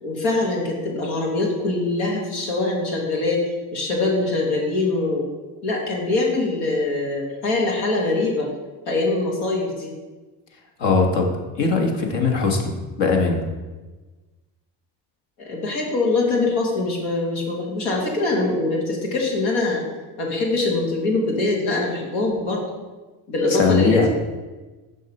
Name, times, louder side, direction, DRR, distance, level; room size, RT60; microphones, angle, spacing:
voice 1, 0.0-3.4 3.7-5.3 5.6-8.5 8.9-9.9 15.4-19.8 20.2-22.6 23.3-24.1, left 2 dB, 85° left, -1 dB, 1.8 m, -23 dB
voice 2, 10.8-11.3 11.6-12.7 13.0-13.4 23.5-24.1, left 4 dB, 65° left, 2 dB, 1.4 m, -19 dB
6.3 x 5.3 x 4.3 m, 1.2 s
supercardioid pair, 75°, 47 cm